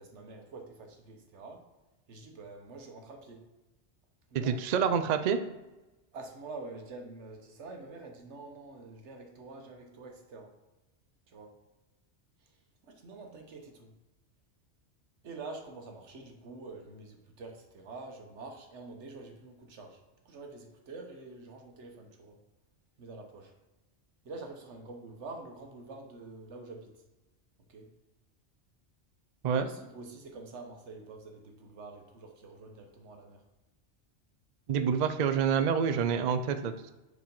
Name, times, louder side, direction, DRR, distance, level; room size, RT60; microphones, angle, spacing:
voice 1, 0.0-1.6 2.1-3.4 4.3-5.1 6.1-10.5 11.3-11.5 12.8-13.9 15.2-20.0 20.2-22.4 23.0-23.5 24.2-27.0 27.7-27.9 29.6-33.4, right 3 dB, 85° right, 3 dB, 1.3 m, -46 dB
voice 2, 4.3-5.4 29.4-29.7 34.7-36.9, right 7 dB, 60° right, 8 dB, 0.4 m, -27 dB
4.9 x 4.7 x 5.3 m, 1.1 s
omnidirectional pair, 1.2 m